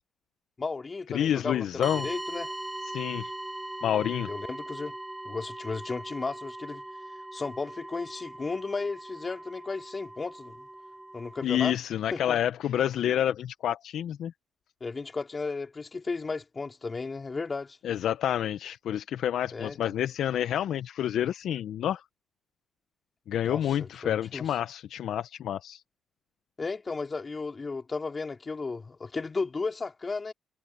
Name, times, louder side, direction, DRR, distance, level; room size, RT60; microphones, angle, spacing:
voice 1, 0.6-2.5 4.2-4.9 5.2-6.8 7.3-10.7 11.1-11.8 12.1-12.4 14.8-17.8 19.5-19.9 23.4-24.5 26.6-30.3, left 4 dB, 30° left, 2.7 m, -34 dB
voice 2, 1.1-2.1 2.9-3.3 3.8-4.3 11.4-14.3 17.8-22.0 23.3-25.8, left 10 dB, 70° left, 0.6 m, -28 dB
sound 1, 1.8-11.4, right 1 dB, 10° right, 5.2 m, -40 dB
cardioid pair, 90°, 0 cm